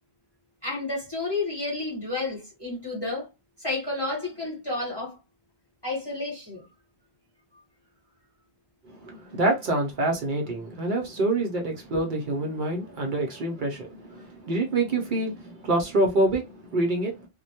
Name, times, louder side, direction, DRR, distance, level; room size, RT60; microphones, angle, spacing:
voice 1, 0.6-3.3 3.6-5.2 5.8-6.6, left 2 dB, 25° left, 0.9 m, -31 dB
voice 2, 8.9-17.3, right 2 dB, 55° right, 0.6 m, -26 dB
2.2 x 2.1 x 2.7 m
omnidirectional pair, 1.1 m